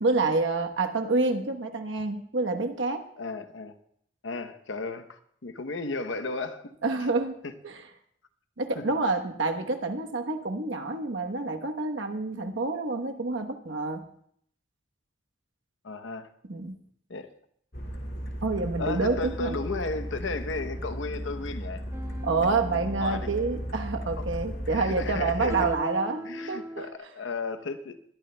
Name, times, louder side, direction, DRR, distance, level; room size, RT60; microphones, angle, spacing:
voice 1, 0.0-3.0 6.8-7.4 7.6-7.8 8.6-14.0 16.5-16.8 18.4-19.6 22.2-26.2 26.5-26.9, right 3 dB, 85° right, 5 dB, 1.1 m, -28 dB
voice 2, 3.2-3.7 4.2-6.7 7.4-7.5 8.8-8.9 15.8-16.3 17.1-17.3 18.8-21.8 23.0-23.3 24.2-24.3 24.7-25.7 26.2-28.0, left 3 dB, 80° left, 8 dB, 0.8 m, -34 dB
sound 1, 17.7-25.7, equal, 60° left, 2.0 m, -35 dB
sound 2, 21.9-26.9, equal, 15° right, 0.6 m, -42 dB
21.0 x 13.5 x 2.2 m, 0.67 s
head